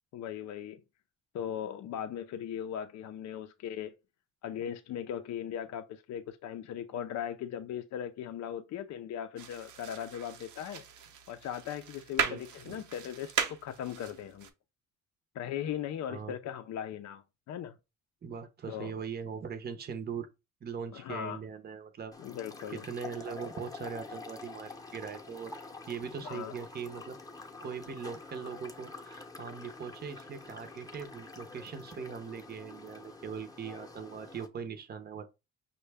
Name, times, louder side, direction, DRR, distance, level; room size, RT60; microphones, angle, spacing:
voice 1, 0.1-0.8 1.3-4.0 4.4-10.8 11.3-14.5 15.3-17.7 18.7-18.9 20.9-21.4 22.2-22.9 26.2-26.5, left 9 dB, 65° left, 0.5 m, -38 dB
sound 1, 9.4-14.5, right 8 dB, 75° right, 0.8 m, -37 dB
voice 2, 12.2-12.8 16.1-16.4 18.2-20.3 20.6-22.1 22.7-25.5 25.9-35.2, right 6 dB, 35° right, 0.7 m, -41 dB
sound 2, 22.1-34.5, left 3 dB, 10° left, 0.7 m, -47 dB
5.4 x 2.2 x 3.3 m
cardioid pair, 90°, 30 cm